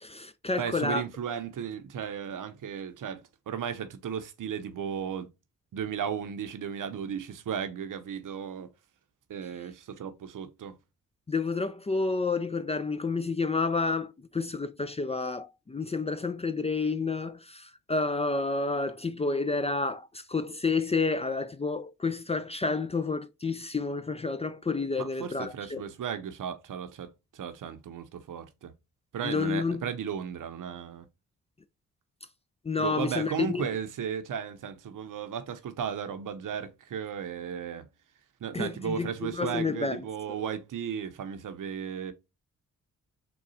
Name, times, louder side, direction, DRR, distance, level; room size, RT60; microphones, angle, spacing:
voice 1, 0.0-1.0 11.3-25.8 29.2-29.8 32.6-33.6 38.5-40.4, left 4 dB, 20° left, 0.4 m, -30 dB
voice 2, 0.6-5.3 5.7-8.7 9.3-10.7 25.0-28.7 29.1-31.0 32.8-37.9 38.4-42.1, right 8 dB, 65° right, 0.7 m, -35 dB
3.8 x 2.3 x 4.0 m
supercardioid pair, 50°, 34 cm